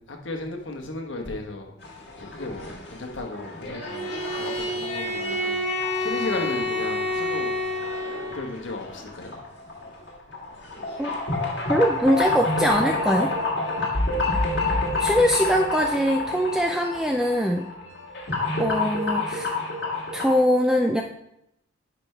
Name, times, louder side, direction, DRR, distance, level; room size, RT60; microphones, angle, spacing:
voice 1, 0.1-1.7 2.2-5.6 6.0-7.6 8.3-9.3 14.0-14.4, left 2 dB, 80° left, 3 dB, 1.3 m, -35 dB
sound 1, 1.8-20.4, left 2 dB, 60° left, 1.7 m, -29 dB
Bowed string instrument, 3.8-8.6, left 1 dB, 35° left, 1.3 m, -28 dB
voice 2, 11.7-13.3 15.0-17.7 18.6-19.5 20.1-21.0, equal, 5° right, 1 dB, 0.3 m, -22 dB
10.5 x 5.2 x 3.3 m, 0.79 s
head